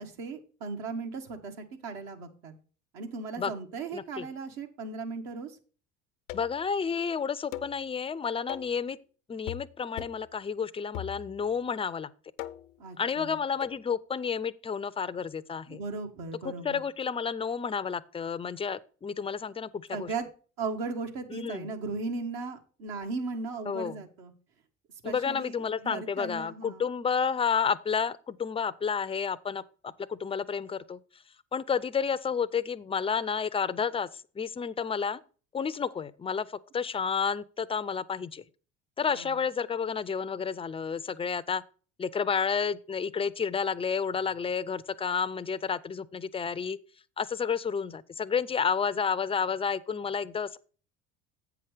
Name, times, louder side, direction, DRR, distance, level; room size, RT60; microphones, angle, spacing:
voice 1, 0.0-2.5 2.9-5.6 12.8-13.4 15.7-16.8 19.9-20.3 20.6-24.3 25.0-26.9 39.1-39.3, right 4 dB, 70° right, 1.5 m, -37 dB
voice 2, 3.9-4.3 6.3-9.0 9.3-12.1 13.0-15.8 16.4-20.1 21.3-21.7 23.7-24.0 25.0-31.0 31.5-35.2 35.5-38.4 39.0-41.6 42.0-46.8 47.2-50.6, left 6 dB, 15° left, 0.4 m, -31 dB
sound 1, 6.3-6.7 7.5-7.8 8.5-8.8 9.5-9.7 10.0-10.3 10.9-11.5 12.4-12.8 13.6-13.8, left 14 dB, 85° left, 0.6 m, -40 dB
8.2 x 5.8 x 4.9 m
hypercardioid pair, 70°, 37 cm